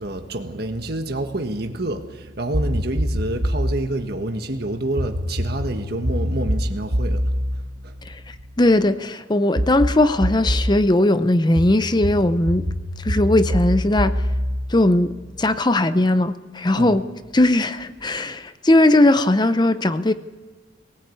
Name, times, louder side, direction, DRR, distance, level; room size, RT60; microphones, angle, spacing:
voice 1, 0.0-7.2 7.5-8.0 16.7-17.0, right 1 dB, 50° right, 1.5 m, -28 dB
sound 1, 2.5-3.8 5.0-8.7 9.6-10.8 11.6-15.5, equal, 70° right, 1.4 m, -25 dB
voice 2, 8.6-12.6 13.0-14.1 14.7-15.1 15.4-17.0 17.3-20.1, left 1 dB, 20° left, 0.6 m, -18 dB
21.5 x 18.0 x 8.5 m
head